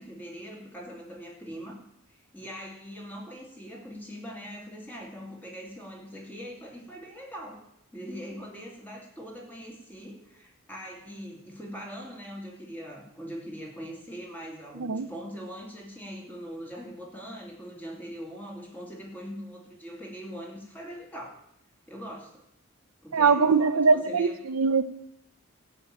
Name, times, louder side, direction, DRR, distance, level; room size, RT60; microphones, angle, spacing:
voice 1, 0.0-1.8 2.1-7.6 7.9-21.4 21.9-22.4 23.0-24.4, equal, 10° left, -1 dB, 2.7 m, -41 dB
voice 2, 14.8-15.1 23.1-24.8, right 4 dB, 80° right, 13 dB, 0.6 m, -22 dB
14.5 x 6.0 x 8.7 m, 0.77 s
head